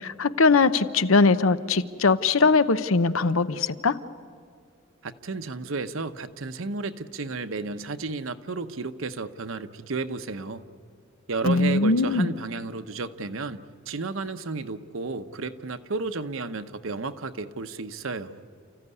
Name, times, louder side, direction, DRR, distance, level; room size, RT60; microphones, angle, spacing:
voice 1, 0.0-4.0 11.4-12.3, left 3 dB, 75° left, 14 dB, 0.8 m, -21 dB
voice 2, 5.0-10.6 11.3-13.6 13.9-18.4, right 3 dB, 70° right, 9 dB, 0.9 m, -32 dB
30.0 x 15.0 x 9.7 m, 2.3 s
head